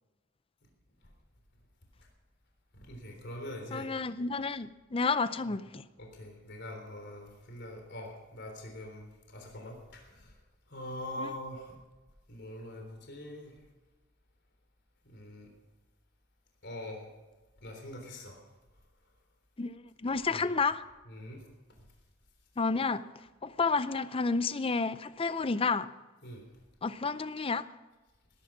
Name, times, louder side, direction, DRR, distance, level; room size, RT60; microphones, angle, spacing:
voice 1, 2.7-3.9 5.4-5.5 6.0-10.3 10.7-11.8 12.3-13.6 15.0-15.5 16.6-17.1 17.6-18.4 20.3-20.5 21.1-21.5 26.2-26.5, left 1 dB, 60° left, 3.6 m, -43 dB
voice 2, 3.7-5.8 11.2-11.3 19.6-20.8 22.6-23.1 23.4-25.9 26.8-27.7, left 4 dB, 30° left, 0.5 m, -30 dB
19.0 x 11.5 x 6.0 m
head